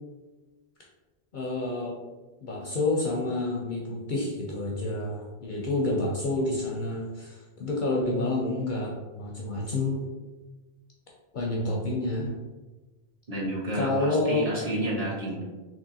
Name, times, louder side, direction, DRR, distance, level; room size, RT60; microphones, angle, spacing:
voice 1, 1.3-2.0 2.4-10.1 11.3-12.3 13.7-14.5, left 2 dB, 55° left, -2 dB, 0.6 m, -29 dB
voice 2, 8.0-8.3 13.3-15.4, right 1 dB, 35° right, -7 dB, 1.1 m, -31 dB
3.6 x 2.9 x 2.7 m, 1.2 s
omnidirectional pair, 1.1 m